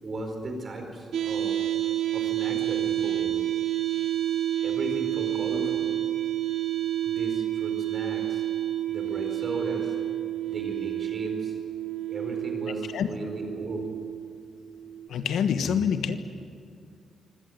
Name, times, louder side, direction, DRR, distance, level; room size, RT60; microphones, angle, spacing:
voice 1, 0.0-1.6 2.1-3.3 4.6-5.9 7.0-8.4 8.9-10.0 10.5-11.6 12.1-13.9, right 2 dB, 35° right, 3 dB, 4.6 m, -36 dB
sound 1, 1.1-15.1, right 12 dB, 75° right, 2.2 m, -29 dB
voice 2, 12.7-13.1 15.1-16.2, left 7 dB, 75° left, 9 dB, 1.3 m, -26 dB
25.0 x 17.0 x 9.4 m, 2.4 s
wide cardioid pair, 165°, 0 cm